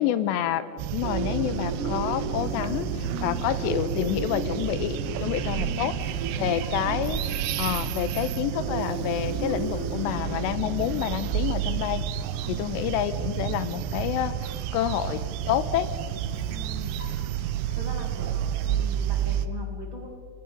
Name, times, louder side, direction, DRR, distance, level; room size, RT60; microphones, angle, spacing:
voice 1, 0.0-5.9 6.4-7.2 7.6-12.0 12.5-14.4 14.7-15.9, left 11 dB, 85° left, 13 dB, 2.9 m, -28 dB
sound 1, 0.8-19.5, right 10 dB, 85° right, 3.1 m, -30 dB
sound 2, 1.0-15.3, right 3 dB, 70° right, 3.9 m, -36 dB
Vehicle, 4.9-13.3 15.0-18.9, left 3 dB, 55° left, 3.4 m, -52 dB
voice 2, 16.5-17.1 17.8-18.3 18.7-20.1, right 2 dB, 40° right, 0 dB, 2.1 m, -41 dB
29.5 x 21.0 x 5.1 m, 2.3 s
omnidirectional pair, 5.1 m